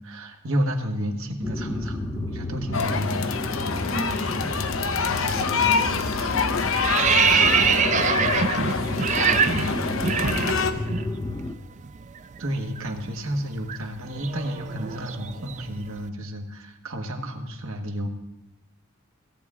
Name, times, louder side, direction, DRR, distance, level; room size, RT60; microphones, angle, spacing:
voice 1, 0.0-3.3 12.4-18.1, equal, 70° right, 3 dB, 1.3 m, -31 dB
sound 1, 1.4-11.5, left 2 dB, 15° left, 0.5 m, -31 dB
sound 2, 2.7-10.7, left 5 dB, 65° left, 0.7 m, -26 dB
voice 2, 3.7-6.6 6.9-11.1, equal, 90° left, -1 dB, 4.6 m, -39 dB
sound 3, 5.5-5.8 6.1-11.1 11.3-11.5 11.8-15.9, right 7 dB, 35° right, 0.3 m, -25 dB
17.0 x 8.5 x 3.6 m, 0.93 s
head